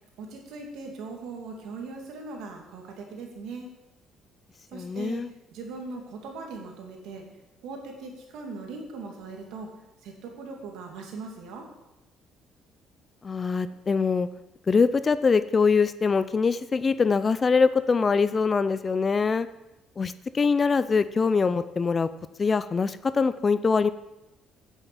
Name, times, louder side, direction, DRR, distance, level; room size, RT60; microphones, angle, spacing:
voice 1, 0.2-3.7 4.7-7.2 7.6-9.7 10.0-11.7, right 4 dB, 80° right, 1 dB, 2.4 m, -39 dB
voice 2, 4.7-5.3 13.2-14.3 14.7-19.5 20.0-22.1 22.4-23.9, left 5 dB, 30° left, 14 dB, 0.4 m, -23 dB
9.3 x 7.2 x 7.0 m, 0.96 s
cardioid pair, 105°, 0 cm